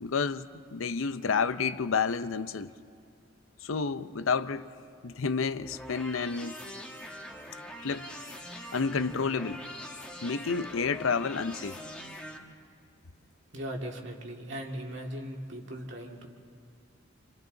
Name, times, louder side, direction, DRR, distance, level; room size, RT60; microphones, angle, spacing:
voice 1, 0.0-2.7 3.6-4.7 5.0-6.5 7.8-8.1 8.7-9.6 10.2-11.8, left 5 dB, 80° left, 0.6 m, -30 dB
sound 1, 5.5-12.4, left 1 dB, 5° left, 1.4 m, -43 dB
voice 2, 13.5-16.3, equal, 60° right, 2.2 m, -38 dB
28.0 x 27.0 x 3.9 m
head